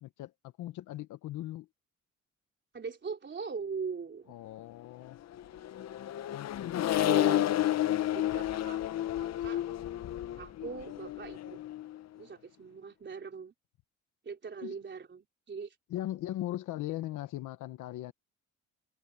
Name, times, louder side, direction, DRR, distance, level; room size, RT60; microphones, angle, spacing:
voice 1, 0.0-0.3 0.6-1.7 4.3-5.2 6.3-6.9 14.6-14.8 15.9-18.1, left 14 dB, 85° left, 1.0 m, -39 dB
voice 2, 2.7-4.3 7.0-7.5 8.1-8.8 9.2-9.6 10.4-11.6 12.2-13.5 14.2-15.8, right 5 dB, 40° right, 3.7 m, -40 dB
Accelerating revving vroom, 5.3-12.0, left 13 dB, 60° left, 0.8 m, -31 dB
cardioid pair, 90°, 30 cm